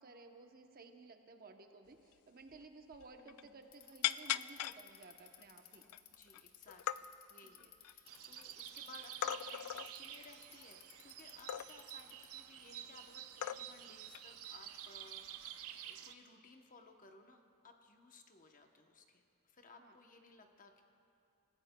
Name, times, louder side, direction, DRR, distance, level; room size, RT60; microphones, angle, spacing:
voice 1, 0.0-5.8 7.6-7.7 19.8-20.0, right 3 dB, 40° right, 5 dB, 0.8 m, -56 dB
sound 1, 2.1-2.2 2.5-2.6 2.9-3.5 4.0-4.8 5.4-5.5 5.8-6.4 6.7-7.0 7.6-8.4 9.2-9.9 11.5-11.9 12.9-13.0 13.4-13.9 14.1-14.3 15.4-15.7, left 12 dB, 85° left, 0.3 m, -39 dB
voice 2, 3.2-3.7 6.1-20.8, left 3 dB, 35° left, 4 dB, 0.8 m, -60 dB
Bicycle, 3.6-12.4, left 11 dB, 65° left, 0.9 m, -60 dB
sound 2, 8.1-16.1, right 10 dB, 70° right, 0.6 m, -50 dB
26.5 x 15.0 x 2.2 m, 2.8 s
head